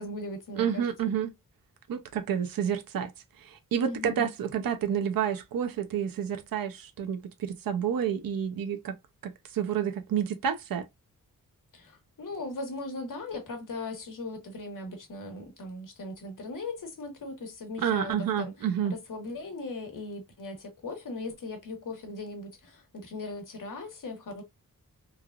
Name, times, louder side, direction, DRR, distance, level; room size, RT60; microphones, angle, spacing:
voice 1, 0.0-1.1 3.8-4.3 11.7-24.4, left 2 dB, 65° left, 1.1 m, -39 dB
voice 2, 0.6-1.3 1.9-3.1 3.4-8.9 9.2-10.8 17.8-18.9, right 8 dB, 80° right, 0.5 m, -29 dB
3.2 x 2.3 x 2.3 m
wide cardioid pair, 160°, 34 cm